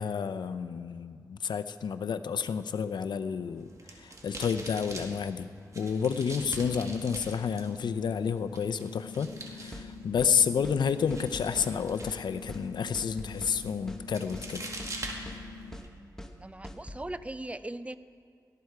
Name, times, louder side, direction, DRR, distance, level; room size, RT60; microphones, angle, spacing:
voice 1, 0.0-5.5 5.7-14.6, left 6 dB, 85° left, 12 dB, 0.5 m, -30 dB
sound 1, 3.5-15.9, right 2 dB, 45° right, 2.0 m, -45 dB
sound 2, 5.8-15.8, left 6 dB, 60° left, 1.3 m, -46 dB
sound 3, 9.7-9.9 10.2-10.3 10.6-10.8 11.1-11.7 12.0-12.2 12.5-12.6 12.9-13.6 13.9-14.0 14.3-14.5 14.8-15.4 15.7-15.9 16.2-16.3 16.6-17.0, left 1 dB, 5° left, 1.1 m, -43 dB
voice 2, 16.4-18.0, right 1 dB, 15° right, 13 dB, 0.5 m, -39 dB
18.0 x 13.5 x 4.7 m, 2.2 s
wide cardioid pair, 85°, 7 cm